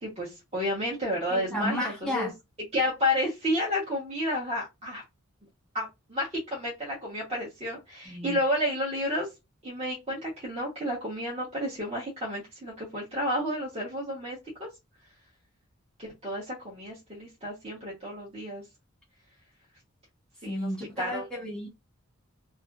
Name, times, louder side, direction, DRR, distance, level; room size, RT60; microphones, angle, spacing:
voice 1, 0.0-2.3 2.7-5.0 5.7-9.3 9.6-14.7 16.0-18.6 20.4-20.7 21.0-21.3, left 1 dB, 30° right, 1.0 m, -31 dB
voice 2, 1.3-2.3 8.1-8.4 20.5-21.7, equal, 5° left, 1.1 m, -32 dB
2.6 x 2.5 x 2.3 m
head